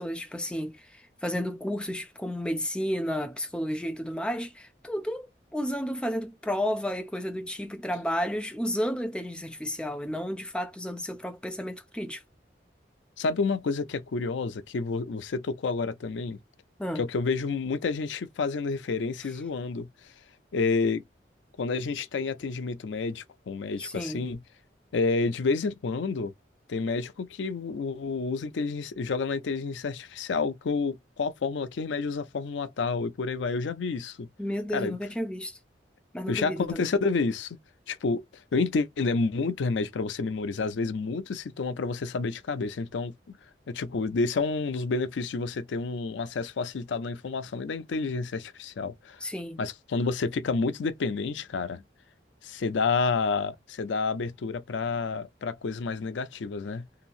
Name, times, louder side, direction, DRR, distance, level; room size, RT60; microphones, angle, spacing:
voice 1, 0.0-12.2 16.8-17.1 23.8-24.4 34.4-35.6 36.1-36.9 49.2-49.6, equal, 5° left, 0.3 m, -32 dB
voice 2, 13.2-16.4 17.0-19.9 20.5-21.0 21.6-24.4 24.9-26.3 26.7-34.3 34.7-35.0 36.3-37.6 37.9-38.2 38.5-43.1 43.7-49.2 49.6-51.8 52.4-56.8, left 4 dB, 90° left, 0.4 m, -29 dB
2.9 x 2.7 x 2.4 m
head